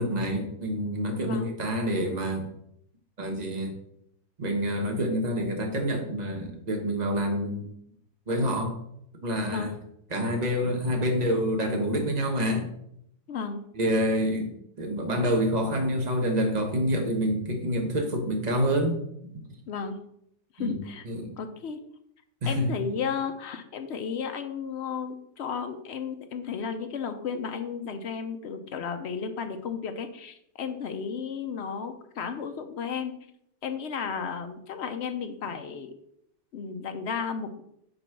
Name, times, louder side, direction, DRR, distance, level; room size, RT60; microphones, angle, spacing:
voice 1, 0.0-2.5 3.2-3.7 4.4-7.7 8.3-8.8 9.2-9.7 10.1-12.7 13.7-19.0 20.6-20.8 21.0-21.4 22.4-22.7, equal, 30° right, 2 dB, 1.1 m, -27 dB
voice 2, 13.3-13.6 19.7-20.0 20.5-21.0 21.4-21.8 22.5-33.1 33.6-35.9 36.5-37.6, left 6 dB, 60° left, 7 dB, 0.7 m, -33 dB
5.3 x 4.0 x 5.8 m, 0.74 s
omnidirectional pair, 1.7 m